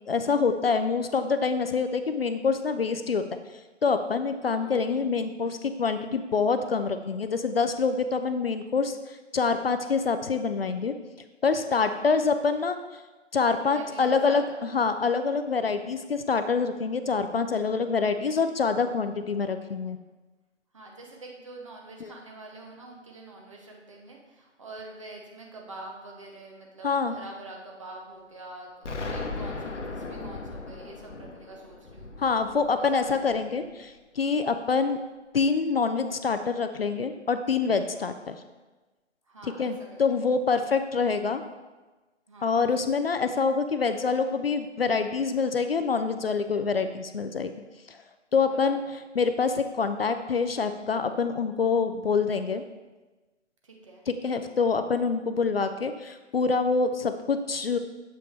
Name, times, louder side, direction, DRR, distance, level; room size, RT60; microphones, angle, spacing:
voice 1, 0.1-3.2 3.8-10.9 11.4-12.8 13.3-14.4 14.7-20.0 22.0-22.1 26.8-27.1 32.2-35.0 35.3-38.4 39.4-41.4 42.4-47.5 47.9-48.0 48.3-48.8 49.2-52.6 54.1-57.8, left 5 dB, 55° left, 9 dB, 0.5 m, -26 dB
voice 2, 4.4-4.9 11.7-12.0 13.7-14.6 20.7-32.1 32.7-33.5 34.7-34.9 37.9-38.2 39.3-40.1 42.3-42.6 48.4-48.9 53.6-54.0, right 2 dB, 25° right, 0 dB, 0.8 m, -45 dB
Explosion, 28.8-33.7, left 3 dB, 75° left, 1.0 m, -37 dB
7.6 x 5.1 x 3.3 m, 1.2 s
figure-of-eight pair, 150°, 36 cm